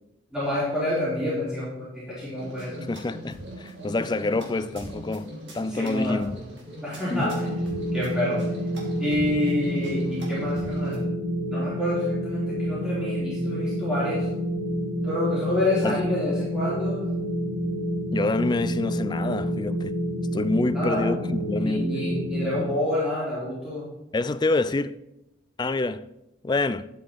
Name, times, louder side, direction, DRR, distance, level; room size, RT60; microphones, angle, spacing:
voice 1, 0.3-2.8 5.7-6.2 6.8-7.3 7.9-8.5 9.0-11.0 11.5-14.3 15.0-17.1 20.7-21.1 21.6-23.9, left 1 dB, 5° right, 3.9 m, -28 dB
sound 1, 2.4-11.0, equal, 60° right, 2.8 m, -40 dB
voice 2, 2.9-5.3 5.5-6.4 7.1-7.3 15.8-16.0 18.1-20.0 20.3-21.9 24.1-25.0 25.6-26.1 26.4-26.9, left 2 dB, 20° left, 0.3 m, -27 dB
sound 2, 7.1-22.6, equal, 35° right, 1.8 m, -28 dB
11.5 x 8.2 x 4.2 m
head